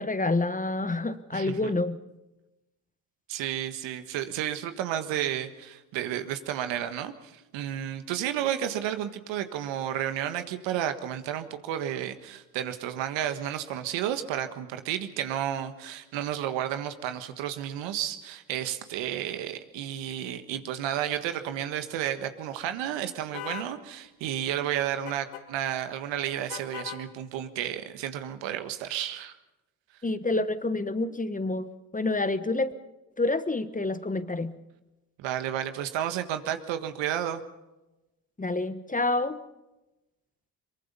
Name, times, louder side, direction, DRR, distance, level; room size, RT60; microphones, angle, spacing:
voice 1, 0.0-2.0 30.0-32.7 33.2-34.6 38.4-39.4, left 2 dB, 15° left, 13 dB, 1.3 m, -28 dB
voice 2, 1.3-1.7 3.3-29.3 35.2-37.4, right 11 dB, 70° right, 9 dB, 1.6 m, -32 dB
sound 1, 23.3-23.7 25.1-25.4 26.5-27.0, left 12 dB, 75° left, 1.6 m, -38 dB
23.0 x 23.0 x 5.5 m, 1.0 s
hypercardioid pair, 50°, 45 cm